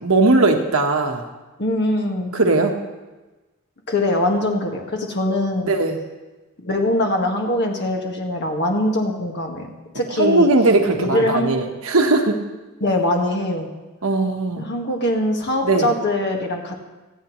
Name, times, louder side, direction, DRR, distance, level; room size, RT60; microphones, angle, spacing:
voice 1, 0.0-1.2 2.3-2.7 5.6-6.0 10.2-12.4 14.0-14.6 15.6-15.9, right 2 dB, 70° right, 3 dB, 1.4 m, -18 dB
voice 2, 1.6-2.4 3.9-5.7 6.6-10.5 11.0-11.6 12.8-13.7 14.6-16.8, left 1 dB, 55° left, 1 dB, 1.8 m, -22 dB
26.0 x 9.2 x 3.2 m, 1.2 s
head